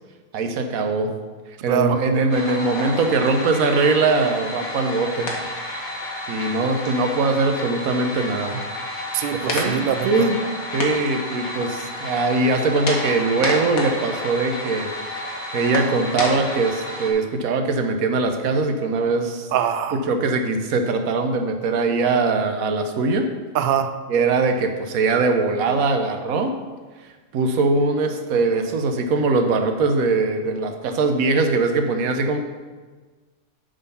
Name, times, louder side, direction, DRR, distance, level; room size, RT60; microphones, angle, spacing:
voice 1, 0.3-1.1 1.6-5.3 6.3-8.6 9.4-10.4 10.7-14.9 15.2-19.5 19.9-23.2 24.1-26.5 27.3-32.4, right 3 dB, 90° right, 5 dB, 1.2 m, -21 dB
sound 1, 2.3-17.1, left 1 dB, 90° left, 1.7 m, -30 dB
voice 2, 9.1-10.3 19.5-20.0 23.5-23.9, right 9 dB, 70° right, 9 dB, 0.5 m, -23 dB
8.6 x 3.8 x 5.5 m, 1.4 s
omnidirectional pair, 1.4 m